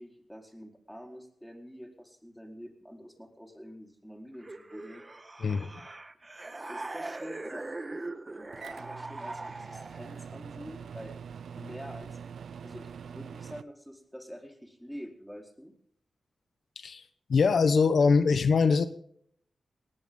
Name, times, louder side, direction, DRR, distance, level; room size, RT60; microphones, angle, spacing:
voice 1, 0.0-5.0 6.7-7.7 8.3-11.2 11.6-12.1 12.6-15.7, equal, ahead, 3 dB, 4.3 m, -46 dB
sound 1, 4.4-10.2, right 2 dB, 30° right, 1.4 m, -41 dB
voice 2, 5.4-5.9 16.8-18.9, left 5 dB, 70° left, 12 dB, 1.0 m, -23 dB
Microwave oven, 8.5-13.6, right 7 dB, 85° right, 0.6 m, -44 dB
19.0 x 18.5 x 3.8 m, 0.66 s
cardioid pair, 70°, 0 cm